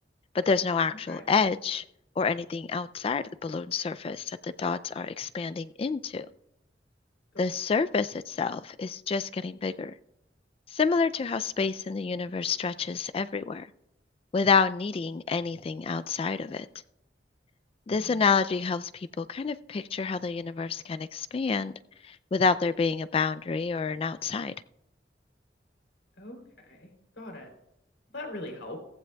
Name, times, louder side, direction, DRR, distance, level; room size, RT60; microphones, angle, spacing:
voice 1, 0.3-1.8 2.2-6.3 7.4-9.9 10.7-13.7 14.3-16.7 17.9-24.5, left 5 dB, 35° left, 0.3 m, -28 dB
voice 2, 26.2-27.5 28.1-28.8, left 1 dB, 90° left, 3.3 m, -41 dB
16.0 x 15.0 x 2.3 m
head